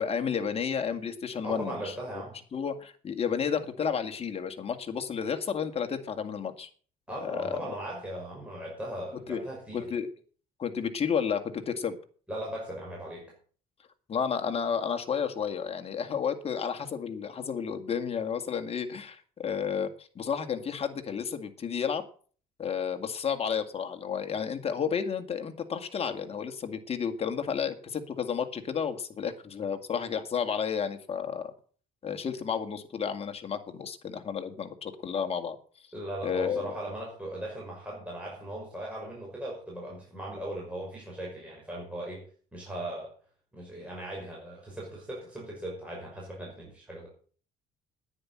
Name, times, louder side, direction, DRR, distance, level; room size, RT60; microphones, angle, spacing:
voice 1, 0.0-1.9 2.5-6.7 7.2-7.7 9.3-9.4 9.7-10.1 10.6-12.0 14.1-22.0 22.6-31.5 32.0-35.6 36.2-36.7, left 7 dB, 35° left, 6 dB, 2.0 m, -31 dB
voice 2, 1.4-2.4 7.1-9.9 12.3-13.3 35.9-43.1 43.5-47.1, right 1 dB, 5° right, -3 dB, 5.7 m, -38 dB
10.0 x 10.0 x 7.5 m, 0.43 s
cardioid pair, 110°, 17 cm